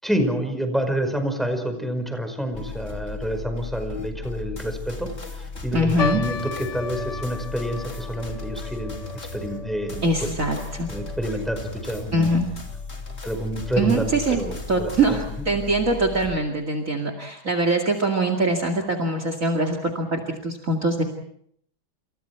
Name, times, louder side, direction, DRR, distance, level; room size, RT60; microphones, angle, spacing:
voice 1, 0.0-5.1 5.4-9.0 9.3-10.3 10.9-12.3 13.2-15.2, equal, ahead, 6 dB, 5.0 m, -28 dB
sound 1, 2.5-16.4, left 3 dB, 30° left, 3.2 m, -36 dB
voice 2, 5.7-6.2 10.0-10.9 12.1-12.5 13.8-14.4 14.7-21.0, right 2 dB, 40° right, 6 dB, 2.6 m, -23 dB
sound 2, 6.0-12.5 12.7-12.8 13.6-13.9 14.5-14.6 14.9-15.1, left 5 dB, 60° left, 1.7 m, -35 dB
29.5 x 29.0 x 4.7 m, 0.68 s
omnidirectional pair, 2.3 m